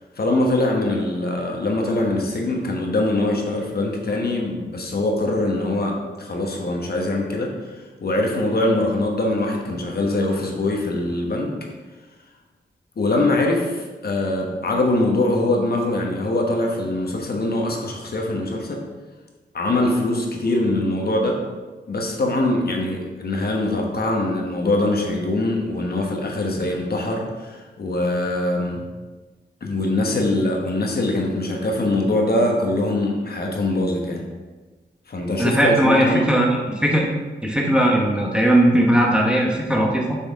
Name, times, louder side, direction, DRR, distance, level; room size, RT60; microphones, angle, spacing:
voice 1, 0.2-7.7 8.0-11.5 13.0-18.8 19.5-21.4 21.9-28.8 29.6-34.2 35.1-36.3, left 2 dB, 60° left, 0 dB, 1.1 m, -23 dB
voice 2, 35.4-37.1 37.4-40.2, right 1 dB, 5° right, -2 dB, 1.0 m, -18 dB
6.3 x 5.7 x 3.6 m, 1.3 s
wide cardioid pair, 95°, 18 cm